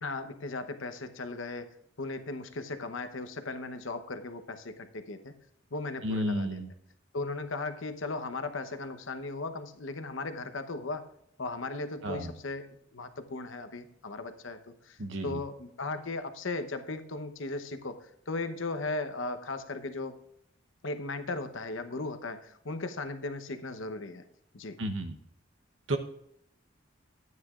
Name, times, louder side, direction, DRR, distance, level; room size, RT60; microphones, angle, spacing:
voice 1, 0.0-1.7 2.0-5.3 5.7-6.6 7.1-11.1 11.4-12.6 12.9-15.0 15.2-20.1 20.8-24.2 24.5-24.8, left 3 dB, 80° left, 9 dB, 0.9 m, -37 dB
voice 2, 6.0-6.7 12.0-12.3 15.0-15.4 24.8-25.2 25.9-26.0, right 1 dB, 70° right, 5 dB, 0.9 m, -32 dB
12.5 x 9.6 x 2.4 m, 0.76 s
head